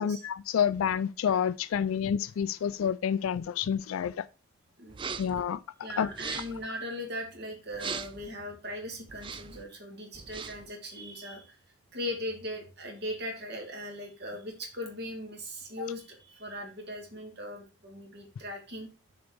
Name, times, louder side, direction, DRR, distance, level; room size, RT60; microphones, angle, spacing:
voice 1, 0.0-4.3 5.2-6.1, left 8 dB, 75° left, 0.3 m, -29 dB
sound 1, 4.9-5.4 6.1-6.6 7.7-8.3 9.1-9.6 10.1-10.7, right 5 dB, 25° right, 0.4 m, -39 dB
voice 2, 5.8-11.6 11.9-18.9, left 1 dB, 50° right, 2.0 m, -39 dB
6.9 x 3.9 x 4.7 m
head